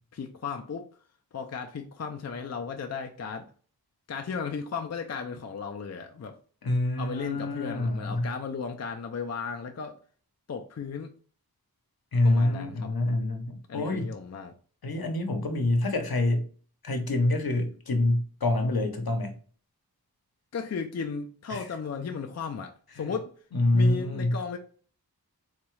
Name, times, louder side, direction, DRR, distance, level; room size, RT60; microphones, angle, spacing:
voice 1, 0.1-0.9 1.3-3.5 4.1-6.4 7.0-10.0 10.5-11.1 12.2-12.9 13.7-14.5 20.5-23.3 23.7-24.6, left 5 dB, 45° left, 0.4 m, -35 dB
voice 2, 6.6-8.3 12.1-14.1 14.8-16.5 16.8-19.4 21.5-21.7 23.0-23.1 23.5-24.4, left 2 dB, 70° left, 0.8 m, -26 dB
4.0 x 2.3 x 3.1 m
wide cardioid pair, 55°, 38 cm